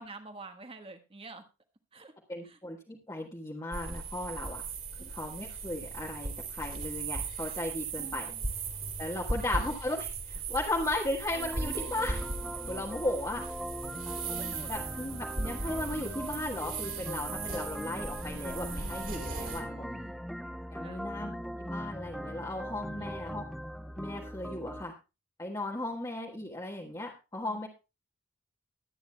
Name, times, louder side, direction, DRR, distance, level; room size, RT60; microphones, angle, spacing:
voice 1, 0.0-1.4 1.9-2.1 2.4-2.6 5.0-5.1 8.0-8.5 9.1-9.4 14.1-14.8 19.4-20.2 20.8-21.2 23.0-23.4 27.4-27.7, right 2 dB, 25° right, 6 dB, 1.4 m, -49 dB
voice 2, 2.3-4.6 5.0-8.3 9.0-12.2 12.7-13.5 14.0-14.1 14.7-19.8 20.7-21.3 21.6-23.4 23.9-24.9 25.4-27.7, left 1 dB, 15° left, -3 dB, 1.5 m, -36 dB
sound 1, 3.7-19.6, right 4 dB, 40° right, 3.0 m, -38 dB
sound 2, 11.3-24.8, equal, ahead, 0.6 m, -40 dB
21.5 x 9.4 x 2.3 m, 0.28 s
head